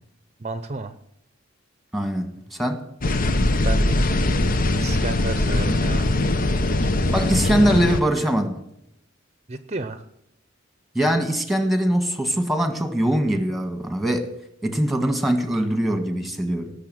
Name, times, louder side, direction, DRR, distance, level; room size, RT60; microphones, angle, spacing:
voice 1, 0.4-0.9 3.6-4.0 4.7-6.1 9.5-10.0, right 3 dB, 35° right, 0.8 m, -32 dB
voice 2, 1.9-2.8 7.1-8.6 11.0-14.3 14.6-16.7, right 1 dB, ahead, 1.8 m, -22 dB
sound 1, 3.0-8.0, left 2 dB, 45° left, 0.9 m, -21 dB
18.0 x 7.0 x 7.7 m
head